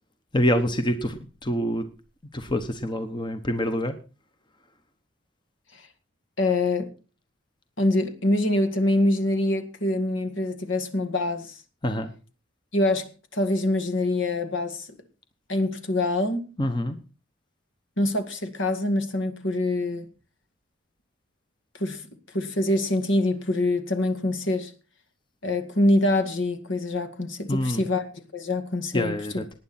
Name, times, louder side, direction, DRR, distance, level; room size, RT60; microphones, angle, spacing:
voice 1, 0.3-1.9 2.3-3.9 11.8-12.1 16.6-17.0 27.5-27.8 28.9-29.5, equal, 20° left, 1.0 m, -26 dB
voice 2, 6.4-6.9 7.8-11.5 12.7-14.9 15.5-16.5 18.0-20.1 21.8-22.0 22.3-24.7 25.4-29.4, left 1 dB, 65° left, 2.0 m, -25 dB
19.0 x 9.5 x 4.3 m
head